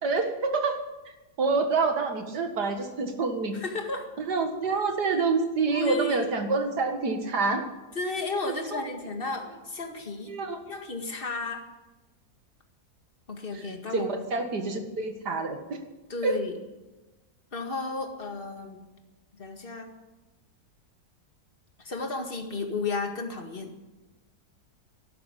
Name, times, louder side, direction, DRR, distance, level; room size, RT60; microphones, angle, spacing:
voice 1, 0.0-0.8 1.4-3.6 4.2-7.6 8.5-8.9 10.2-10.6 13.5-13.6 13.9-15.8 16.2-16.4, right 4 dB, 85° right, 5 dB, 2.4 m, -27 dB
voice 2, 3.5-4.1 5.1-5.2 5.7-6.3 8.0-10.4 10.7-11.6 13.3-14.1 16.1-16.6 17.5-18.8 19.4-19.9 21.8-23.7, left 3 dB, 35° left, 4 dB, 2.1 m, -33 dB
12.0 x 12.0 x 10.0 m, 1.1 s
omnidirectional pair, 1.7 m